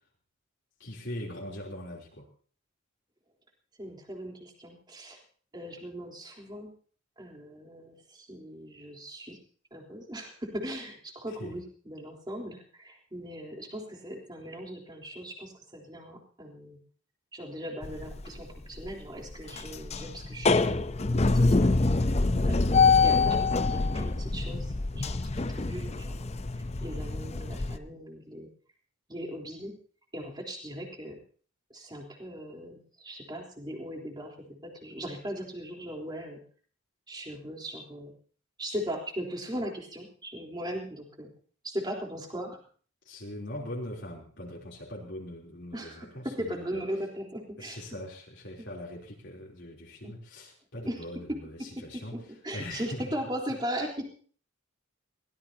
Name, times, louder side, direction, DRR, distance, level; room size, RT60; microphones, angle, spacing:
voice 1, 0.8-2.3 11.3-11.6 43.0-46.8 47.6-52.1 52.5-53.0, left 1 dB, 55° left, -3 dB, 3.4 m, -41 dB
voice 2, 3.8-5.2 5.5-6.7 7.2-9.4 9.7-16.8 17.3-22.2 22.5-28.5 29.1-29.8 30.1-31.2 31.7-36.4 37.1-38.1 38.6-41.3 41.6-42.6 45.7-47.8 48.6-48.7 50.0-50.1 50.9-54.1, equal, 20° right, 0 dB, 3.8 m, -39 dB
sound 1, 17.8-18.4 18.8-18.9 19.3-27.8, left 3 dB, 30° left, 0.6 m, -25 dB
22.5 x 18.0 x 2.9 m, 0.43 s
head